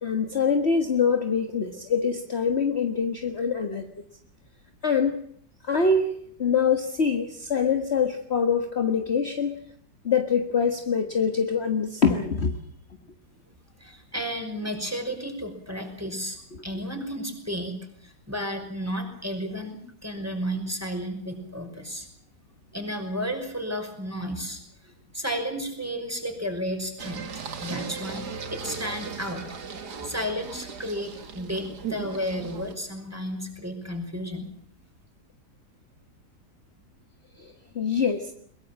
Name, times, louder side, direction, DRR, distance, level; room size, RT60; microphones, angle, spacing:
voice 1, 0.0-3.9 4.8-5.2 5.6-6.1 6.4-9.5 10.0-12.6 37.4-38.3, left 5 dB, 40° left, 6 dB, 1.7 m, -24 dB
voice 2, 13.8-22.1 22.7-27.3 27.6-29.5 30.0-34.5, equal, 10° right, 5 dB, 5.6 m, -33 dB
Singing, 27.0-32.8, right 6 dB, 70° right, 2.4 m, -37 dB
22.5 x 22.0 x 7.4 m, 0.66 s
omnidirectional pair, 1.8 m